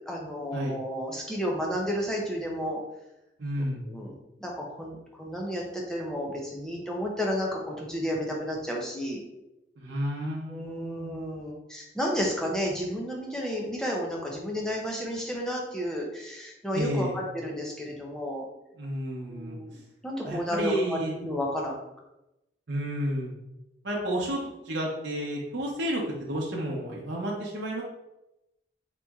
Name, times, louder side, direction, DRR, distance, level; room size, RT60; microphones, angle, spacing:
voice 1, 0.1-2.8 3.6-4.1 4.4-9.2 10.5-18.5 19.3-19.8 20.0-21.8, equal, 5° left, -2 dB, 0.7 m, -32 dB
voice 2, 3.4-3.8 9.8-11.2 16.7-17.1 18.8-19.6 20.2-21.1 22.7-23.3 23.8-24.4 24.6-26.0 26.3-27.8, equal, 80° right, -3 dB, 0.8 m, -31 dB
4.1 x 3.0 x 3.5 m, 0.92 s
head